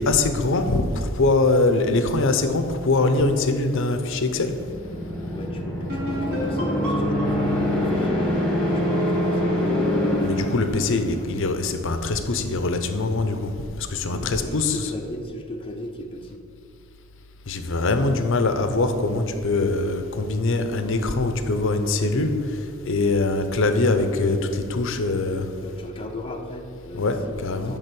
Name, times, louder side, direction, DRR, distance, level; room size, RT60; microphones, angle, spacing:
voice 1, 0.0-4.5 10.2-13.5 13.9-14.9 17.5-22.3 22.8-25.5 26.9-27.8, left 3 dB, 65° left, 8 dB, 0.7 m, -23 dB
voice 2, 3.7-4.2 5.3-8.2 8.6-9.9 10.8-11.3 14.0-16.4 25.5-27.8, left 1 dB, 25° left, 2 dB, 0.7 m, -37 dB
sound 1, 4.5-11.3, left 1 dB, 5° left, 1.6 m, -24 dB
sound 2, 5.9-9.5, equal, 50° right, 2.3 m, -33 dB
10.0 x 3.6 x 6.9 m, 2.4 s
head